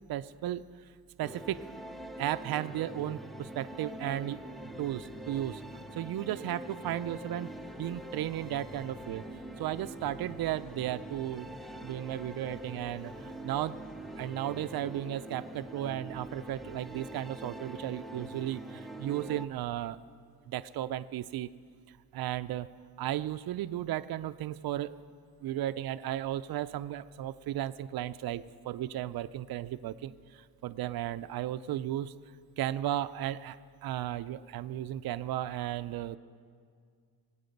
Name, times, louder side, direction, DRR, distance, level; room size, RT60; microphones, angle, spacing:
voice 1, 0.1-0.6 1.2-1.6 2.2-4.4 4.8-5.6 5.9-7.5 7.8-9.2 9.6-11.5 11.8-13.8 14.2-20.0 20.5-21.5 22.1-22.7 23.0-24.9 25.4-32.1 32.6-33.6 33.8-36.2, right 12 dB, 70° right, 11 dB, 0.5 m, -35 dB
sound 1, 1.2-19.5, right 1 dB, ahead, 0.7 m, -44 dB
sound 2, 7.4-14.2, equal, 70° left, 1.8 m, -56 dB
24.0 x 8.8 x 5.3 m, 2.1 s
cardioid pair, 95°, 38 cm